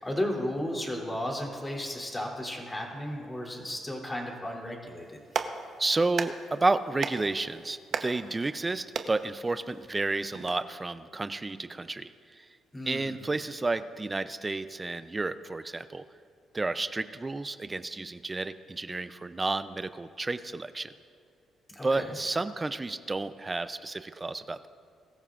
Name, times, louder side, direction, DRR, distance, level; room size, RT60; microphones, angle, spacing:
voice 1, 0.0-5.2 12.7-13.1 21.7-22.1, left 1 dB, 15° left, -1 dB, 3.1 m, -34 dB
Clapping, 5.0-10.5, right 6 dB, 60° right, 0.9 m, -38 dB
voice 2, 5.8-12.5 12.9-16.0 16.5-20.9 21.8-24.7, right 3 dB, 20° right, 13 dB, 0.5 m, -31 dB
22.0 x 14.0 x 2.5 m, 2.2 s
cardioid pair, 90°, 0 cm